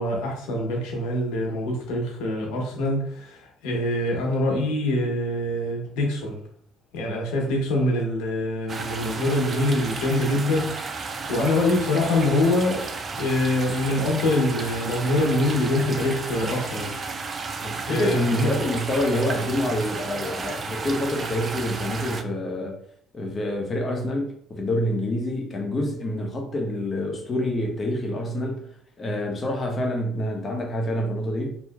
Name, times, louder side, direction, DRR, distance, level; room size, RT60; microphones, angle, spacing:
voice 1, 0.0-6.4 6.9-12.9 13.2-17.0 17.9-18.5, left 1 dB, 90° left, 0.9 m, -24 dB
sound 1, 8.7-22.2, right 4 dB, 35° right, 0.4 m, -33 dB
voice 2, 17.6-22.8 23.1-28.6 29.0-31.5, left 1 dB, 35° left, 0.9 m, -27 dB
3.0 x 2.7 x 2.3 m
cardioid pair, 90°, 0 cm